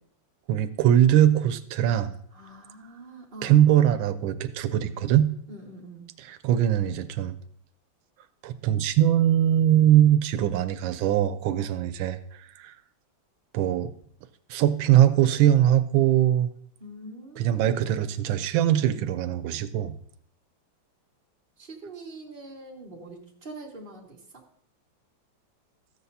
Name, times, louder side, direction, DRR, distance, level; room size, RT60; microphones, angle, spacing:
voice 1, 0.5-2.1 3.4-5.3 6.2-7.4 8.4-12.7 13.5-13.9 14.5-16.5 17.4-20.0, right 11 dB, 90° right, 10 dB, 1.4 m, -21 dB
voice 2, 2.3-3.6 4.7-5.0 5.5-6.1 11.5-11.7 16.8-18.1 21.6-24.2, right 2 dB, 30° right, -3 dB, 1.9 m, -44 dB
13.5 x 8.0 x 2.7 m, 0.63 s
omnidirectional pair, 2.1 m